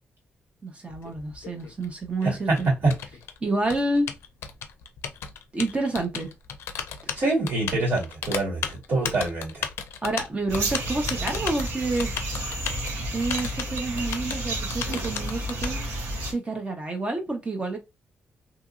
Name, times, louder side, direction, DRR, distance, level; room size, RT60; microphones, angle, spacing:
voice 1, 0.6-2.7 3.4-4.1 5.5-6.3 7.1-7.2 10.0-12.1 13.1-15.8 16.2-17.8, right 2 dB, 30° right, 0.8 m, -29 dB
Typing, 0.9-15.7, left 8 dB, 85° left, 0.4 m, -35 dB
voice 2, 2.2-2.6 2.8-2.9 7.2-9.6, right 2 dB, 65° right, 2.0 m, -25 dB
sound 1, 10.5-16.3, right 1 dB, 90° right, 1.1 m, -31 dB
2.8 x 2.7 x 2.4 m
cardioid pair, 90°, 4 cm